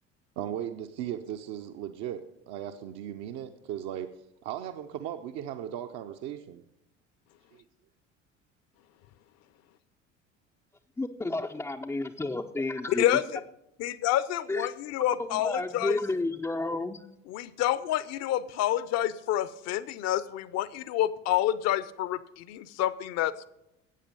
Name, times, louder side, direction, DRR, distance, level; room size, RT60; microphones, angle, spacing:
voice 1, 0.4-4.1 4.4-6.6 7.5-7.6, right 10 dB, 45° right, 6 dB, 0.7 m, -37 dB
voice 2, 11.0-13.2 14.5-14.7 15.2-17.0, left 2 dB, 5° left, 2 dB, 0.5 m, -31 dB
voice 3, 12.9-13.4 13.8-16.0 17.3-23.3, left 12 dB, 45° left, 17 dB, 0.7 m, -28 dB
14.0 x 8.6 x 5.3 m, 0.84 s
figure-of-eight pair, 65°, 37 cm